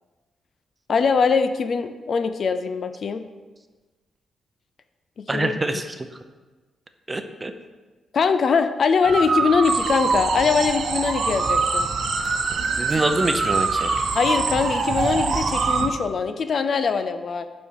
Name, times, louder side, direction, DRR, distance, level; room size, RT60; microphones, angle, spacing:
voice 1, 0.9-3.2 5.2-5.6 8.1-11.9 14.1-17.5, left 5 dB, 55° left, 10 dB, 0.6 m, -22 dB
voice 2, 5.3-6.1 7.1-7.5 12.8-13.9, right 2 dB, 20° right, 8 dB, 0.7 m, -25 dB
sound 1, 9.0-15.9, right 4 dB, 50° right, 1.0 m, -24 dB
sound 2, 9.6-15.8, right 6 dB, 65° right, 0.7 m, -32 dB
7.2 x 5.4 x 6.3 m, 1.3 s
cardioid pair, 90°, 0 cm